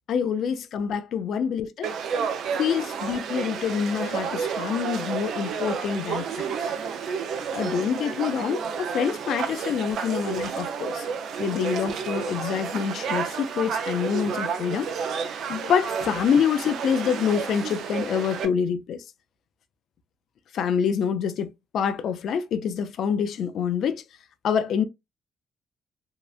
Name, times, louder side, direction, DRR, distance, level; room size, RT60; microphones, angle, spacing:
voice 1, 0.1-1.9 2.6-6.7 7.5-11.1 11.4-14.9 15.5-19.0 20.5-24.0 24.4-24.8, left 7 dB, 70° left, 0.4 m, -26 dB
Conversation / Crowd, 1.8-18.5, right 6 dB, 75° right, 0.4 m, -31 dB
2.8 x 2.0 x 2.3 m
cardioid pair, 90°, 0 cm